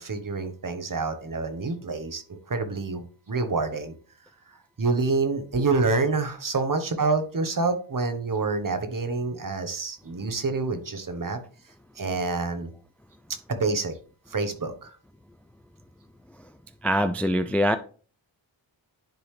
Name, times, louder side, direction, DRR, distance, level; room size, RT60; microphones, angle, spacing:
voice 1, 0.0-3.9 4.5-11.4 12.0-12.7 13.5-14.0 14.3-15.0, right 3 dB, 45° right, 1.2 m, -27 dB
voice 2, 16.8-17.8, equal, 5° left, 0.3 m, -23 dB
10.5 x 4.0 x 3.2 m
wide cardioid pair, 70°, 47 cm